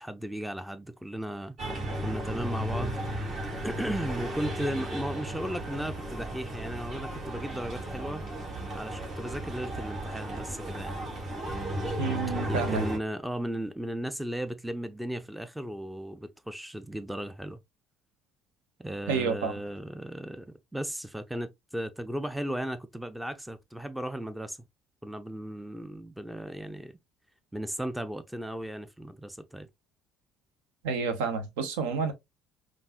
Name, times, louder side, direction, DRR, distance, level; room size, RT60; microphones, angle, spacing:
voice 1, 0.0-1.6 2.0-3.0 3.6-8.2 8.7-11.0 12.5-17.6 18.8-24.6 25.0-26.9 27.5-29.7, right 1 dB, 5° right, 0.5 m, -36 dB
sound 1, 1.6-13.0, right 1 dB, 45° right, 2.4 m, -35 dB
voice 2, 12.0-12.9 19.1-19.5 30.8-32.1, right 5 dB, 70° right, 0.8 m, -29 dB
5.3 x 2.5 x 2.4 m
hypercardioid pair, 55°, 0 cm